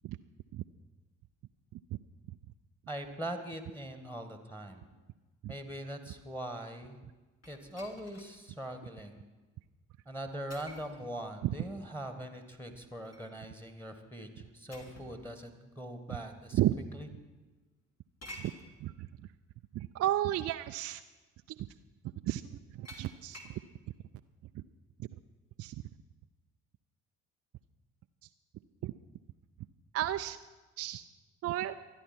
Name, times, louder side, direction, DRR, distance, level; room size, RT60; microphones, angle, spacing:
voice 1, 2.9-4.9 5.5-7.0 7.5-9.2 10.1-16.6 16.9-17.1, right 1 dB, 5° left, 7 dB, 1.8 m, -42 dB
sound 1, 7.4-8.4 8.9-9.0 10.5-11.0 12.7-13.3 14.7-15.2 16.2-16.3 18.2-18.7 20.1-20.2 20.6-20.9 22.8-23.6, left 1 dB, 40° left, 2.9 m, -50 dB
voice 2, 19.7-21.0 22.2-22.4 22.8-23.4 24.5-24.6 25.6-25.8 28.8-28.9 29.9-30.4 30.8-31.0 31.4-31.7, right 13 dB, 40° right, 8 dB, 0.5 m, -32 dB
25.0 x 10.0 x 4.5 m, 1.2 s
figure-of-eight pair, 45°, 38 cm